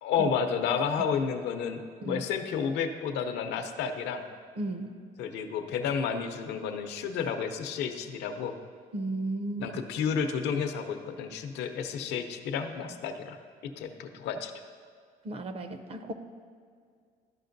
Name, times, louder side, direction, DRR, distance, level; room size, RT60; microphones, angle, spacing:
voice 1, 0.0-4.2 5.2-8.5 9.6-13.4 13.6-14.5, left 6 dB, 85° left, 7 dB, 0.6 m, -31 dB
voice 2, 4.6-5.0 8.9-9.7 15.2-16.1, right 2 dB, 35° right, 9 dB, 0.5 m, -34 dB
12.5 x 5.1 x 2.6 m, 2.1 s
cardioid pair, 110°, 17 cm